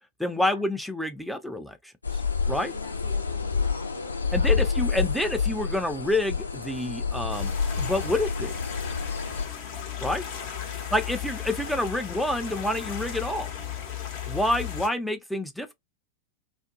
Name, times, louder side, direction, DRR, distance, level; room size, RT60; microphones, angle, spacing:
voice 1, 0.2-1.8 2.5-2.7 4.3-7.5 7.8-8.5 10.0-10.2 10.9-13.5 14.3-15.7, left 1 dB, ahead, 0.4 m, -28 dB
sound 1, 2.0-9.5, left 5 dB, 80° left, 0.7 m, -28 dB
voice 2, 2.5-4.9 10.5-10.9, equal, 90° right, 0.9 m, -45 dB
sound 2, 7.3-14.9, left 9 dB, 50° left, 0.8 m, -36 dB
2.5 x 2.1 x 2.6 m
figure-of-eight pair, 90°, 0 cm